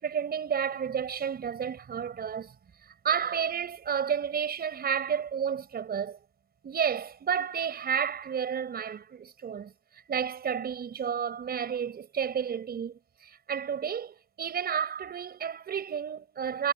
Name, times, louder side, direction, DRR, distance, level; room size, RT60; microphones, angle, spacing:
voice 1, 0.0-2.6 3.0-6.2 6.6-9.7 10.1-16.7, right 7 dB, 50° right, 5.5 m, -31 dB
cardioid pair, 90°, 20 cm